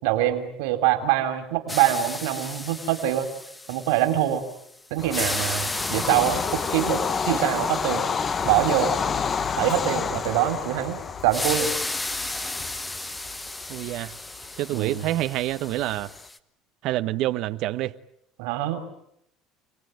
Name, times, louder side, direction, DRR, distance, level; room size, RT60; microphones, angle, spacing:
voice 1, 0.0-3.3 3.7-4.4 4.9-8.0 8.4-8.9 9.6-11.7 14.7-15.1 18.4-18.8, right 12 dB, 85° right, 3.5 m, -24 dB
sound 1, 1.7-4.6 5.0-9.8 11.3-16.4, left 2 dB, 15° left, 1.6 m, -34 dB
Bird vocalization bird call bird song / Train, 5.0-16.2, left 6 dB, 35° left, 1.1 m, -30 dB
voice 2, 13.7-14.1 14.6-16.1 16.8-18.0, right 15 dB, 65° right, 1.0 m, -27 dB
29.0 x 19.0 x 9.2 m
supercardioid pair, 105°, 0 cm